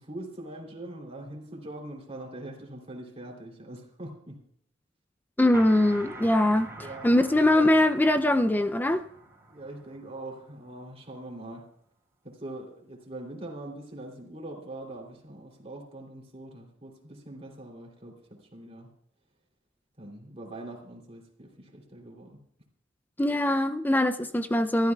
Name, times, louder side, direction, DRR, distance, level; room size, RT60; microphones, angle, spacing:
voice 1, 0.0-4.4 6.8-7.1 7.5-7.8 9.5-11.6 12.2-18.2 18.5-18.9 20.0-22.4, right 1 dB, 30° right, 3.2 m, -42 dB
voice 2, 5.4-9.0 23.2-24.9, left 1 dB, 10° left, 0.5 m, -22 dB
sound 1, 5.5-11.0, right 2 dB, 15° right, 4.1 m, -46 dB
28.5 x 13.5 x 2.4 m
head